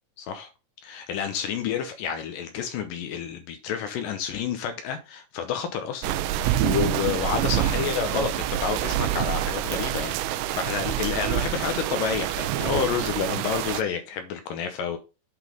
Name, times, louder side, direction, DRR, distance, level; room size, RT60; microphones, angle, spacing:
voice 1, 0.2-0.5 0.8-15.0, left 7 dB, 85° left, 1.9 m, -29 dB
sound 1, 6.0-13.8, right 13 dB, 80° right, 2.6 m, -27 dB
8.8 x 4.0 x 5.2 m
omnidirectional pair, 5.1 m